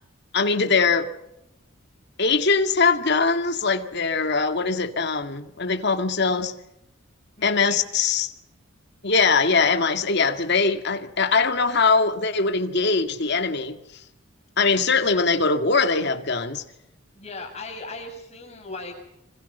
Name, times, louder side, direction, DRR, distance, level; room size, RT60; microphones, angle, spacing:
voice 1, 0.3-1.1 2.2-6.5 7.4-8.3 9.0-13.8 14.6-16.6, left 4 dB, 55° left, 7 dB, 2.1 m, -22 dB
voice 2, 7.4-7.8 17.1-19.0, left 2 dB, 30° left, 2 dB, 7.3 m, -37 dB
27.0 x 25.0 x 5.6 m, 0.83 s
head